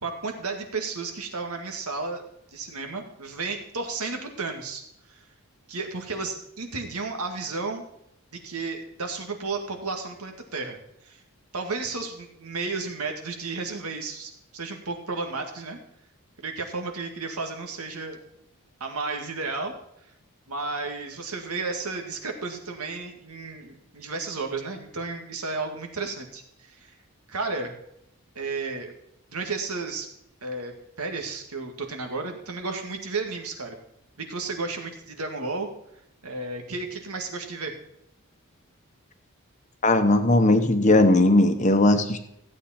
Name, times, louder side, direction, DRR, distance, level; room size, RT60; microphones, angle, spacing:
voice 1, 0.0-2.2 2.5-4.8 5.1-5.2 5.7-7.8 8.3-10.8 11.0-11.2 11.5-15.8 16.4-18.2 18.8-19.7 20.5-27.0 27.3-27.7 28.4-28.9 29.3-30.1 30.4-33.8 34.2-35.7 36.2-37.7, right 3 dB, 85° right, 4 dB, 2.0 m, -33 dB
voice 2, 39.8-42.2, left 2 dB, 35° left, 8 dB, 1.0 m, -18 dB
15.0 x 8.5 x 4.3 m, 0.78 s
head